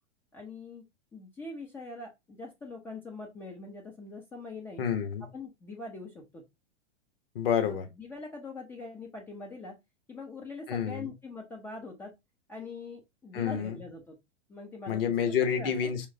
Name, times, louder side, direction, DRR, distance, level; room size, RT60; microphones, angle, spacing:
voice 1, 0.3-0.8 1.1-4.8 5.3-6.4 7.6-9.8 10.1-12.1 12.5-14.2 14.5-15.0 15.4-15.9, left 3 dB, 5° left, 0.3 m, -43 dB
voice 2, 4.8-5.3 7.3-7.9 10.7-11.1 13.3-13.8 14.9-16.1, left 8 dB, 50° left, 1.0 m, -29 dB
5.0 x 3.1 x 2.6 m
figure-of-eight pair, 100°, 36 cm